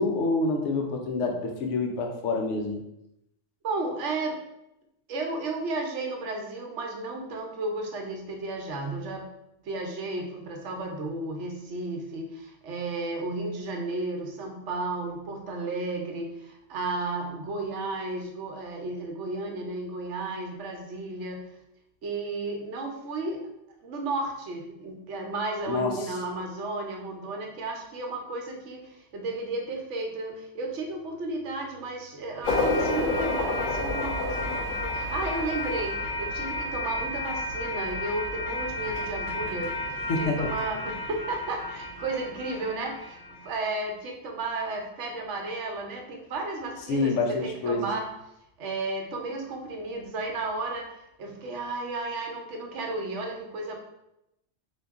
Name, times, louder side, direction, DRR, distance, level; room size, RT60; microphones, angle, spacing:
voice 1, 0.0-2.8 25.7-25.9 40.1-40.4 46.9-47.9, left 3 dB, 75° left, 2 dB, 1.0 m, -27 dB
voice 2, 3.6-4.4 5.1-9.3 9.6-21.5 22.0-23.4 23.8-48.1 48.6-53.8, right 2 dB, 70° right, 2 dB, 1.0 m, -33 dB
sound 1, 32.4-43.6, left 2 dB, 50° left, 0.7 m, -31 dB
3.9 x 2.8 x 3.4 m, 0.85 s
omnidirectional pair, 1.3 m